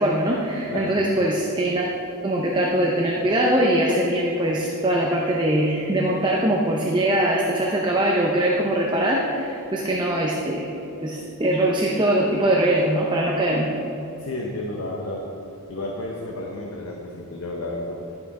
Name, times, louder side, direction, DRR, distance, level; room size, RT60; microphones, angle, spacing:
voice 1, 0.0-1.9 2.2-10.7 11.0-13.7, right 1 dB, 20° right, -2 dB, 0.7 m, -22 dB
voice 2, 0.7-1.0 14.2-15.3 15.7-18.0, left 2 dB, 65° left, -1 dB, 0.9 m, -31 dB
11.5 x 5.8 x 4.8 m, 2.9 s
head